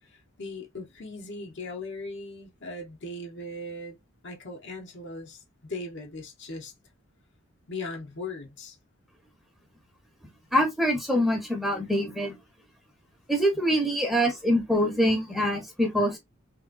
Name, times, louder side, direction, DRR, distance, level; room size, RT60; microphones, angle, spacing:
voice 1, 0.4-4.0 4.2-6.7 7.7-8.8, left 2 dB, 60° left, 1.0 m, -38 dB
voice 2, 10.5-12.4 13.3-16.2, equal, ahead, 0.9 m, -24 dB
3.0 x 2.9 x 2.5 m
head